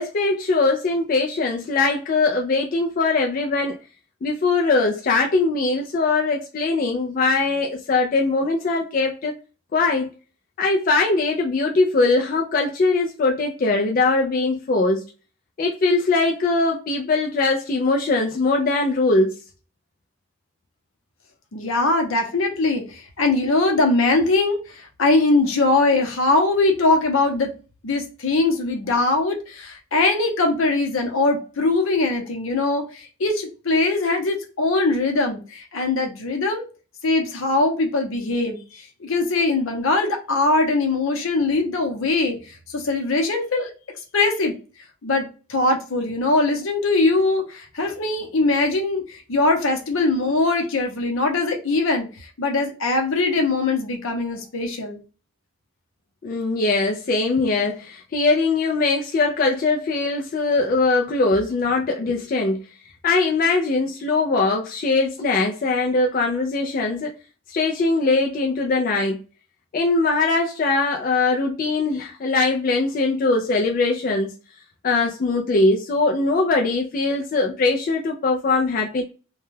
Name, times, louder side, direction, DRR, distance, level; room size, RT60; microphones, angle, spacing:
voice 1, 0.0-3.8 4.2-9.4 9.7-10.1 10.6-15.0 15.6-19.4 56.2-62.6 63.0-67.1 67.5-69.2 69.7-74.3 74.8-79.0, left 3 dB, 40° left, 0.3 m, -21 dB
voice 2, 21.5-27.5 27.8-36.6 37.0-43.7 44.1-44.6 45.0-55.0, left 2 dB, 75° left, 0.7 m, -21 dB
2.2 x 2.1 x 3.1 m
head